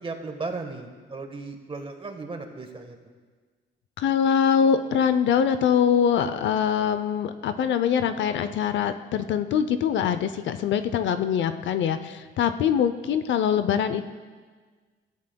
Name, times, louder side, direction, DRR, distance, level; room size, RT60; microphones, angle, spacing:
voice 1, 0.0-3.0, right 3 dB, 25° right, 5 dB, 1.4 m, -36 dB
voice 2, 4.0-14.1, left 8 dB, 70° left, 10 dB, 0.6 m, -23 dB
17.5 x 13.5 x 2.3 m, 1.4 s
cardioid pair, 90°, 20 cm